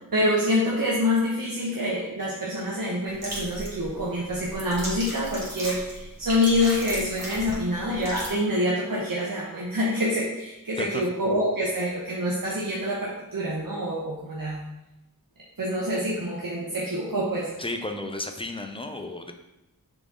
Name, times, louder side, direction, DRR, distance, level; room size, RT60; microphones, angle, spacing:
voice 1, 0.1-14.6 15.6-17.5, left 1 dB, 70° right, -6 dB, 1.2 m, -26 dB
sound 1, 3.1-8.3, right 1 dB, 45° right, 2.4 m, -36 dB
voice 2, 17.6-19.3, left 2 dB, 15° left, 5 dB, 0.6 m, -33 dB
6.6 x 4.2 x 3.7 m, 0.92 s
wide cardioid pair, 75°, 36 cm